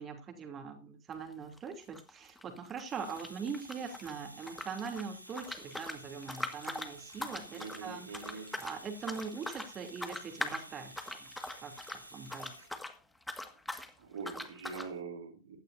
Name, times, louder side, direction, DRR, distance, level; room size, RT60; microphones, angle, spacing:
voice 1, 0.0-8.1 8.3-11.3 11.6-12.5, right 6 dB, 25° right, 5 dB, 2.9 m, -42 dB
sound 1, 1.1-1.3 1.6-4.1 4.4-13.0 13.2-13.9 14.2-14.9, left 1 dB, 5° left, 1.7 m, -42 dB
Domestic sounds home sounds, 2.8-12.7, right 1 dB, 85° right, 2.2 m, -52 dB
voice 2, 7.5-8.5 14.0-15.6, right 5 dB, 65° right, 4 dB, 2.9 m, -43 dB
16.0 x 12.5 x 2.6 m, 0.29 s
figure-of-eight pair, 90°, 0 cm